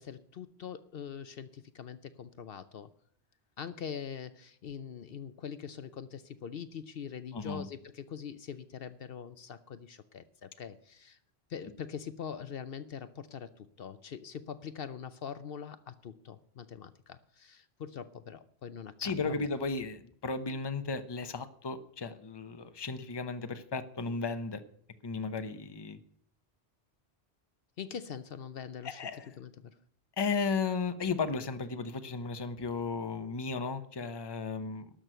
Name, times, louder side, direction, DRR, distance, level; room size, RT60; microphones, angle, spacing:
voice 1, 0.0-2.9 3.6-11.2 11.5-19.5 27.8-29.0 29.4-29.8, left 7 dB, 65° left, 13 dB, 0.9 m, -43 dB
voice 2, 7.3-7.7 19.0-24.6 25.0-26.0 28.8-29.4 30.2-34.9, left 4 dB, 25° left, 10 dB, 0.8 m, -35 dB
12.5 x 6.3 x 9.0 m, 0.63 s
omnidirectional pair, 1.1 m